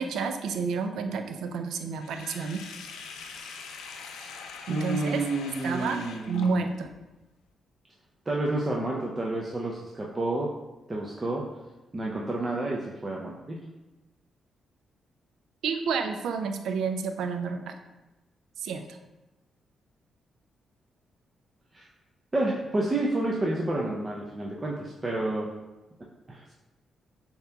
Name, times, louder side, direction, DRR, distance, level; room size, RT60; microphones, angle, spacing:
voice 1, 0.0-2.6 4.7-5.2 5.6-6.0 6.3-6.9 15.6-17.7 18.6-19.0, right 5 dB, 80° right, 7 dB, 0.4 m, -30 dB
Sink (filling or washing), 2.0-6.9, left 5 dB, 85° left, 0.4 m, -43 dB
voice 2, 4.7-6.7 8.3-10.5 10.9-11.4 11.9-13.6 21.7-21.9 22.3-25.5 26.3-26.5, right 2 dB, 30° right, -3 dB, 0.6 m, -30 dB
6.5 x 2.9 x 2.3 m, 1.0 s
supercardioid pair, 55°, 0 cm